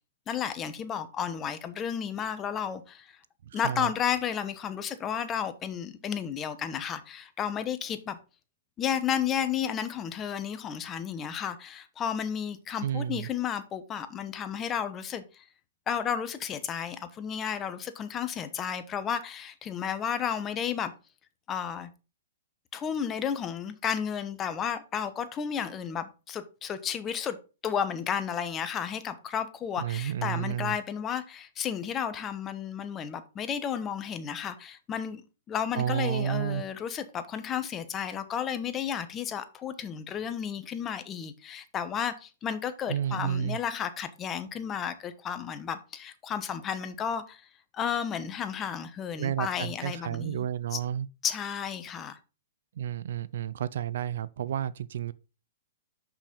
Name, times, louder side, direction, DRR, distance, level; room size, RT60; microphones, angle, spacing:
voice 1, 0.3-3.2 3.5-8.2 8.8-15.4 15.9-20.9 21.5-21.9 22.7-27.4 27.6-35.2 35.5-47.4 47.7-50.8 51.2-52.2, left 8 dB, 25° left, 1.0 m, -32 dB
voice 2, 3.4-3.9 12.8-13.3 29.8-30.8 35.7-36.6 42.9-43.6 49.2-51.1 52.8-55.1, right 10 dB, 65° right, 0.5 m, -31 dB
6.4 x 6.0 x 5.3 m
hypercardioid pair, 130°, 0 cm